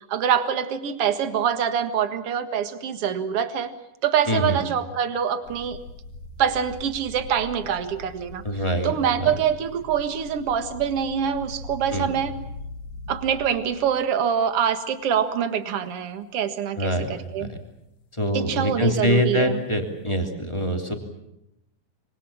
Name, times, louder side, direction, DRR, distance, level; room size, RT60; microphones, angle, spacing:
voice 1, 0.0-3.7 4.0-5.8 6.4-8.4 8.8-12.3 13.1-17.5 18.3-19.6, right 8 dB, 55° right, 9 dB, 2.4 m, -25 dB
voice 2, 4.3-4.6 8.4-9.3 11.9-12.1 16.8-17.1 17.4-17.6 18.2-20.9, equal, 10° left, 3 dB, 2.8 m, -24 dB
sound 1, 5.4-14.2 15.0-15.4 15.9-16.0 19.6-20.2, left 2 dB, 75° left, 3.8 m, -41 dB
26.0 x 24.5 x 7.2 m, 0.86 s
omnidirectional pair, 3.5 m